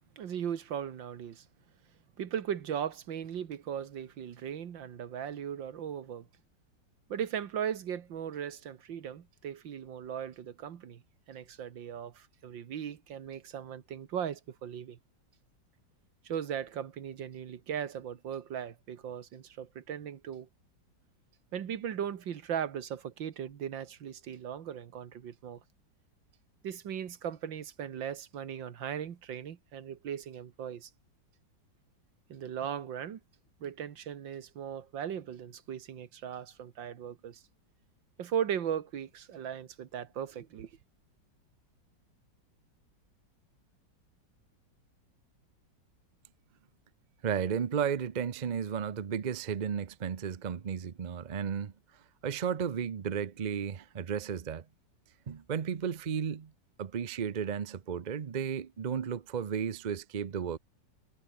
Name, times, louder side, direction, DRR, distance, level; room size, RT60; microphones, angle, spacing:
voice 1, 0.2-1.5 2.2-6.3 7.1-11.0 11.3-15.0 16.2-20.5 21.5-25.6 26.6-30.9 32.3-33.2 33.6-37.4 38.2-40.7, right 9 dB, 80° right, 2.1 m, -38 dB
voice 2, 47.2-51.7 52.2-54.6 55.3-56.5 56.8-60.6, right 7 dB, 55° right, 0.5 m, -33 dB
omnidirectional pair, 2.0 m